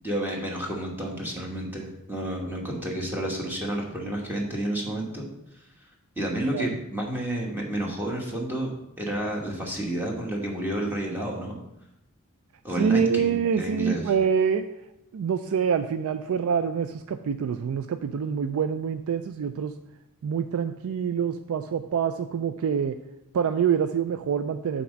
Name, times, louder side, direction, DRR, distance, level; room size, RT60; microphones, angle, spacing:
voice 1, 0.0-5.3 6.1-8.7 9.0-11.6 12.6-14.1, right 1 dB, 10° right, -2 dB, 1.3 m, -30 dB
voice 2, 12.8-14.6 15.1-19.7 20.2-23.0 23.3-24.8, right 7 dB, 65° right, 9 dB, 0.3 m, -26 dB
5.8 x 4.2 x 6.2 m, 0.86 s
head